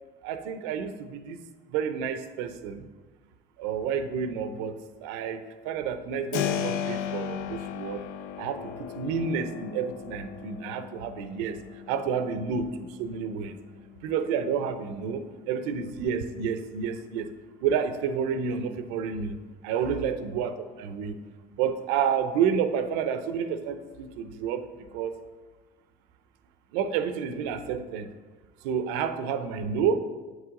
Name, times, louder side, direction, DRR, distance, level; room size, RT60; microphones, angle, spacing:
voice 1, 0.2-1.4 1.7-2.9 3.6-8.0 8.4-13.5 14.0-17.3 17.6-19.4 19.6-21.1 21.6-24.7 24.9-25.2 26.7-28.1 28.6-30.0, right 7 dB, 85° right, 10 dB, 0.6 m, -30 dB
Keyboard (musical), 6.3-17.0, left 9 dB, 80° left, 0.4 m, -37 dB
7.9 x 4.8 x 3.7 m, 1.3 s
supercardioid pair, 85°, 21 cm